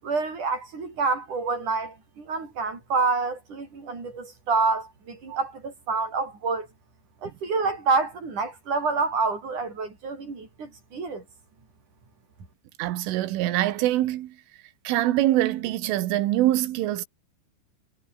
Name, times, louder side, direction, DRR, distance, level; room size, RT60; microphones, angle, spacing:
voice 1, 0.0-6.7 7.2-11.2, right 4 dB, 40° right, 8.0 m, -28 dB
voice 2, 12.8-14.3 14.9-17.1, right 14 dB, 85° right, 4.0 m, -24 dB
omnidirectional pair, 5.5 m